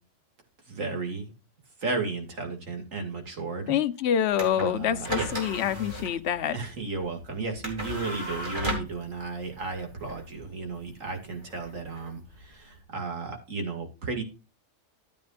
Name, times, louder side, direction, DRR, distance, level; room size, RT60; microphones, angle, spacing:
voice 1, 0.7-1.3 1.8-3.8 4.5-5.3 6.0-6.1 6.5-14.2, right 4 dB, 80° right, 2.6 m, -34 dB
voice 2, 3.7-6.6, left 9 dB, 60° left, 1.0 m, -26 dB
sound 1, 4.3-12.8, equal, 40° right, 3.1 m, -37 dB
13.5 x 8.7 x 2.5 m
omnidirectional pair, 1.3 m